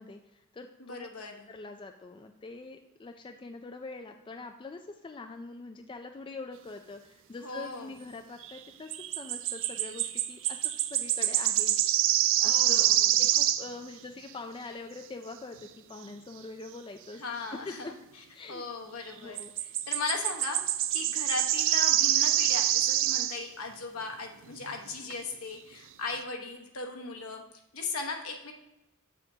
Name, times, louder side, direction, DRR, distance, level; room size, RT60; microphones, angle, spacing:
voice 1, 0.0-1.1 1.5-11.8 12.4-17.2 17.5-17.9 18.3-18.6 19.2-19.5, left 3 dB, 20° left, 5 dB, 0.3 m, -44 dB
voice 2, 0.8-1.5 7.4-7.9 12.4-13.2 17.2-17.9 18.5-20.6 20.9-27.4 27.7-28.5, left 3 dB, 70° left, 3 dB, 1.1 m, -37 dB
sound 1, 8.4-8.6 8.9-13.7 19.4-23.4 24.7-24.8 25.1-25.2, right 12 dB, 60° right, 0.4 m, -26 dB
7.3 x 6.7 x 2.7 m, 0.92 s
head